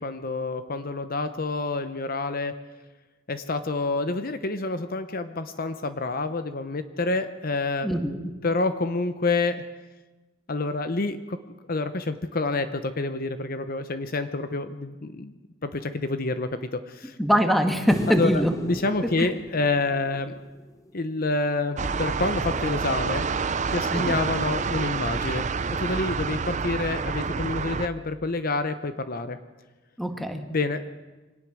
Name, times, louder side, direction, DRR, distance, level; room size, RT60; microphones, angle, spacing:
voice 1, 0.0-2.5 3.3-7.9 8.4-9.6 10.5-15.3 15.6-17.2 18.1-20.3 20.9-23.3 23.7-25.5 25.8-29.4 30.5-30.8, left 3 dB, 50° left, 10 dB, 0.9 m, -28 dB
voice 2, 17.2-18.5 19.2-19.3 23.9-24.2 30.0-30.4, equal, ahead, 5 dB, 1.7 m, -23 dB
sound 1, 17.9-21.2 23.7-23.8, left 1 dB, 15° left, 1.4 m, -36 dB
sound 2, 21.8-27.9, right 5 dB, 40° right, 0.6 m, -28 dB
24.0 x 18.5 x 6.3 m, 1.2 s
head